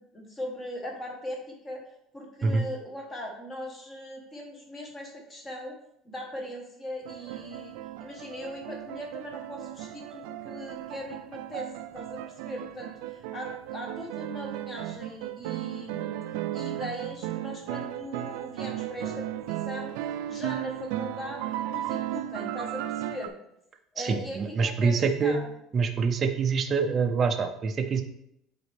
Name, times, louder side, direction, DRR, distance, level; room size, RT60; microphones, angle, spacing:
voice 1, 0.0-1.8 2.1-5.8 6.0-16.2 16.5-23.4 23.9-25.4, left 1 dB, 15° left, 1 dB, 1.2 m, -40 dB
sound 1, 7.0-23.3, right 13 dB, 85° right, 0.3 m, -35 dB
voice 2, 24.0-25.4 25.7-28.0, right 5 dB, 25° right, 5 dB, 0.5 m, -25 dB
8.0 x 4.2 x 3.3 m, 0.77 s
cardioid pair, 180°, 0 cm